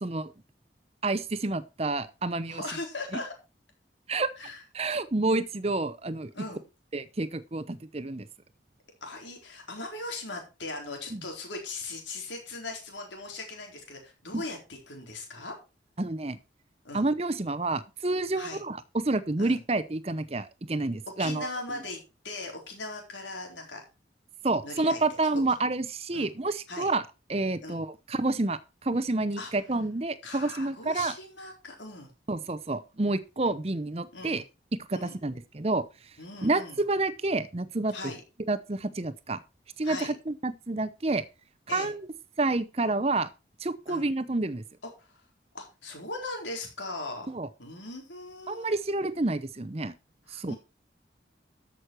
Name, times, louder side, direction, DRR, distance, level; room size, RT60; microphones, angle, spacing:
voice 1, 0.0-0.3 1.0-2.6 4.1-4.3 4.7-6.3 6.9-8.3 11.1-11.2 14.3-14.4 16.0-16.4 16.9-21.5 24.4-27.0 27.3-31.1 32.3-34.4 34.9-35.8 36.4-37.9 38.5-39.4 39.8-41.2 41.7-42.1 42.4-43.3 43.6-44.6 47.3-47.5 48.5-49.9 50.3-50.5, right 2 dB, 35° right, 14 dB, 0.8 m, -29 dB
voice 2, 2.5-3.3 4.4-4.6 6.3-6.6 9.0-15.6 16.8-17.1 18.3-18.6 19.4-19.6 21.2-23.8 24.6-25.0 25.3-25.4 26.1-26.3 26.7-26.9 27.6-27.8 29.4-29.5 30.2-32.1 34.1-34.4 34.9-35.2 36.2-36.8 37.9-38.2 39.8-40.1 41.7-41.9 43.9-44.1 45.0-45.2 45.5-47.3 47.6-48.8 50.3-50.6, left 2 dB, 85° left, 2 dB, 4.1 m, -39 dB
13.5 x 6.4 x 4.5 m, 0.29 s
head